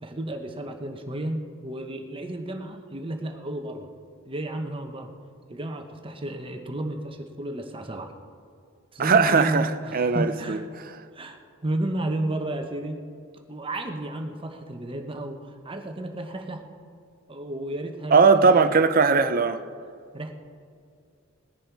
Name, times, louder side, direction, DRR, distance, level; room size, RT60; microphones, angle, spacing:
voice 1, 0.0-3.9 4.2-5.1 5.5-8.1 8.9-10.6 11.1-13.0 13.5-16.6 17.3-18.8 20.1-20.3, right 1 dB, 25° right, 1.0 m, -32 dB
voice 2, 9.0-10.6 18.1-19.6, right 5 dB, 45° right, 0.6 m, -19 dB
19.0 x 10.5 x 4.7 m
head